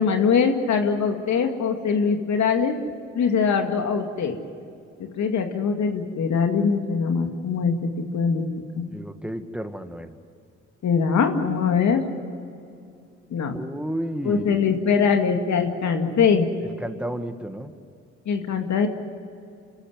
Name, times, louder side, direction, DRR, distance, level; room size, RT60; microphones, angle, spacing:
voice 1, 0.0-2.8 3.2-4.4 5.0-8.5 8.8-8.9 10.8-12.0 13.3-13.6 14.2-16.5 18.3-18.9, left 6 dB, 65° left, 5 dB, 2.3 m, -22 dB
voice 2, 8.9-10.2 13.5-14.6 16.8-17.7, equal, 5° right, 8 dB, 2.0 m, -32 dB
27.0 x 14.5 x 9.6 m, 2.5 s
supercardioid pair, 50°, 30 cm